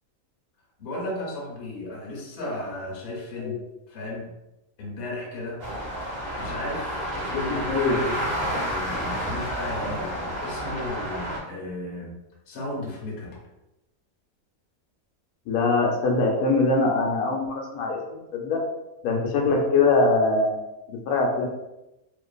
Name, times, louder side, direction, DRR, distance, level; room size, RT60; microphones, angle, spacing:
voice 1, 0.8-3.6 3.9-4.3 4.8-5.6 6.3-12.2 12.5-13.4 19.4-19.6, left 2 dB, 55° left, -3 dB, 0.8 m, -35 dB
sound 1, 5.6-11.4, equal, 55° right, 0.7 m, -30 dB
voice 2, 7.3-8.0 15.5-18.6 19.0-20.6 20.9-21.5, left 3 dB, 90° left, 0 dB, 1.1 m, -23 dB
2.5 x 2.4 x 2.2 m, 0.94 s
omnidirectional pair, 1.5 m